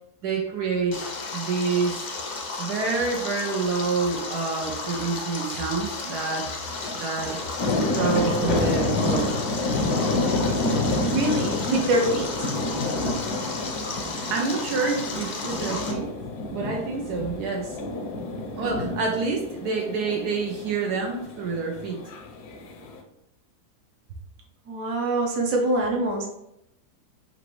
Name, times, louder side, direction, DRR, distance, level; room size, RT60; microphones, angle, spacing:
voice 1, 0.2-1.0 1.3-2.1 2.6-6.5 6.9-7.4 7.9-9.3 14.3-16.1 16.5-17.8 18.6-22.0, right 4 dB, 80° right, 0 dB, 1.3 m, -27 dB
Stream, 0.9-15.9, left 3 dB, 65° left, 0.4 m, -33 dB
sound 1, 6.7-23.0, left 2 dB, 85° left, 1.2 m, -29 dB
voice 2, 11.1-12.5 24.7-26.3, right 2 dB, 60° right, 0 dB, 1.3 m, -24 dB
6.0 x 2.6 x 3.0 m, 0.83 s
omnidirectional pair, 1.7 m